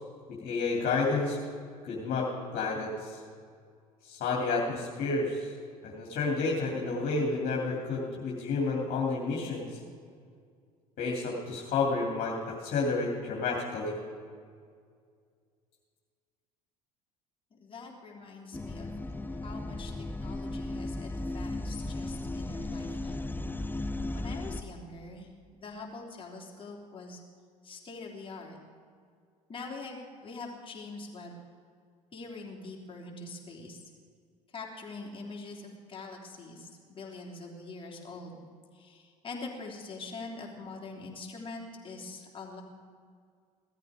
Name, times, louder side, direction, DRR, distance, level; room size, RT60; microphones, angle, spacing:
voice 1, 0.3-1.4 1.8-3.2 4.0-5.5 5.8-9.8 11.0-13.9, left 3 dB, 50° left, -2 dB, 2.7 m, -30 dB
voice 2, 17.5-19.9 20.2-23.4 24.1-27.2 27.6-28.6 29.5-31.4 32.1-33.8 34.5-38.4 38.7-42.6, left 3 dB, 25° left, -2 dB, 3.5 m, -44 dB
sound 1, 18.5-24.6, left 2 dB, 10° left, 0.6 m, -36 dB
17.0 x 13.5 x 5.0 m, 2.1 s
hypercardioid pair, 65°, 19 cm